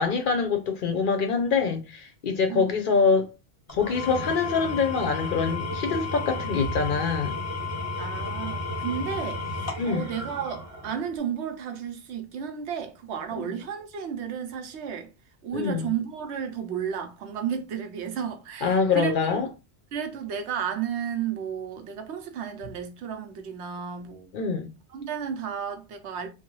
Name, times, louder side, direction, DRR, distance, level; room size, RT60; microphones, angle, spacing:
voice 1, 0.0-3.3 3.7-7.4 9.8-10.1 13.4-13.5 15.5-15.9 18.6-19.5 24.3-24.7, left 5 dB, 60° left, 0.6 m, -25 dB
Engine / Tools, 3.7-11.2, left 2 dB, 15° left, 0.8 m, -33 dB
voice 2, 8.0-15.1 15.4-19.1 19.9-24.3 24.9-26.3, right 8 dB, 85° right, 0.9 m, -33 dB
2.6 x 2.3 x 3.0 m
omnidirectional pair, 1.1 m